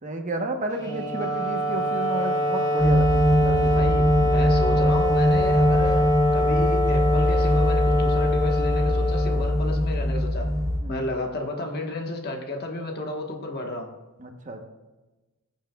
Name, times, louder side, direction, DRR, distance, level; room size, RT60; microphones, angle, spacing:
voice 1, 0.0-3.9 10.8-11.1 14.2-14.7, right 1 dB, 35° right, 4 dB, 1.0 m, -32 dB
Wind instrument woodwind instrument, 0.8-10.1, left 1 dB, 20° left, 1.4 m, -25 dB
sound 1, 2.8-10.8, equal, ahead, 3.2 m, -22 dB
voice 2, 3.7-6.1 6.3-10.5 10.9-13.9, left 2 dB, 50° left, 2 dB, 1.3 m, -32 dB
20.5 x 7.4 x 2.3 m, 1.1 s
head